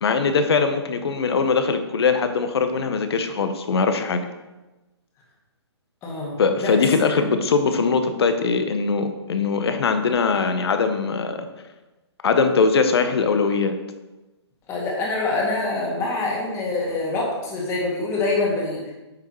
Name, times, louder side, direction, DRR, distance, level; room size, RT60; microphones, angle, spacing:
voice 1, 0.0-4.2 6.4-11.5 12.2-13.7, left 4 dB, 60° left, 8 dB, 0.9 m, -21 dB
voice 2, 6.0-6.7 7.1-7.2 14.7-18.9, left 2 dB, 20° left, -2 dB, 1.8 m, -25 dB
9.0 x 5.7 x 3.1 m, 1.1 s
hypercardioid pair, 140°, 15 cm